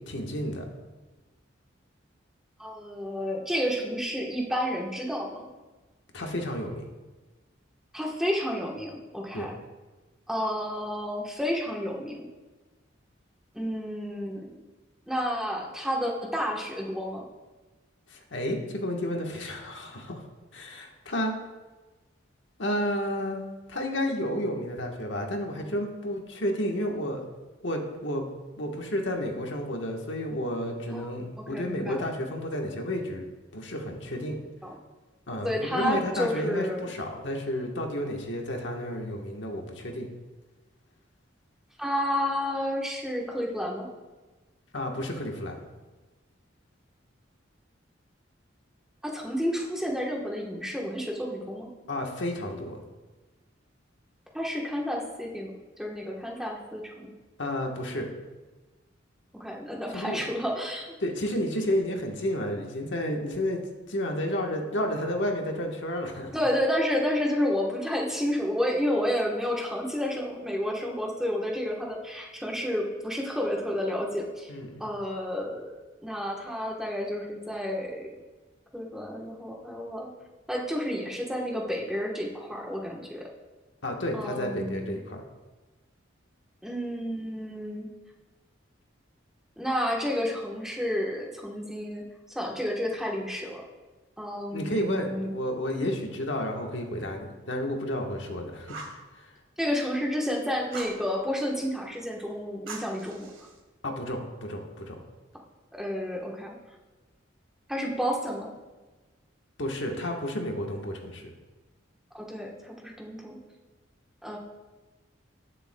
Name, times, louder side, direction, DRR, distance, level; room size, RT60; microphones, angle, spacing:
voice 1, 0.1-0.6 6.1-6.9 9.3-9.5 18.1-20.2 20.5-21.3 22.6-27.2 27.6-28.2 28.6-33.3 33.5-34.4 35.3-40.1 44.7-45.6 51.9-52.8 57.4-58.1 59.9-60.2 61.0-63.6 63.9-66.3 74.5-74.8 83.8-85.2 94.5-98.8 99.1-99.3 103.8-105.0 109.6-111.3, left 1 dB, 65° left, 2 dB, 1.2 m, -31 dB
voice 2, 2.6-5.4 7.9-9.6 10.3-12.3 13.5-14.6 15.1-17.2 30.9-31.0 31.5-32.0 34.6-34.7 35.4-36.8 41.8-43.9 49.0-51.7 54.3-57.1 59.4-60.9 66.3-74.5 74.8-75.7 76.0-78.0 78.7-80.1 80.5-83.2 84.1-84.9 86.6-87.9 89.6-92.0 92.3-93.6 94.2-95.3 99.6-103.3 105.8-106.5 107.7-108.5 112.1-113.4 114.2-114.4, equal, 5° right, -2 dB, 1.1 m, -30 dB
Fire, 98.7-99.0 100.7-101.0 102.7-103.6, right 3 dB, 85° right, 1.7 m, -41 dB
19.0 x 6.8 x 2.2 m, 1.2 s
head